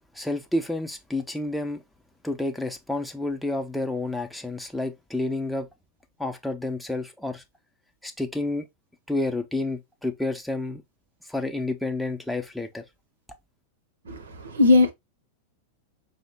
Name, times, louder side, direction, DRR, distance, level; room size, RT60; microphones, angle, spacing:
voice 1, 0.1-1.8 2.2-5.7 6.2-7.4 8.0-8.6 9.1-10.8 11.3-12.8, left 2 dB, ahead, 0.6 m, -29 dB
voice 2, 14.0-14.9, left 3 dB, 65° right, 0.8 m, -19 dB
5.4 x 2.1 x 3.5 m
figure-of-eight pair, 90°, 0 cm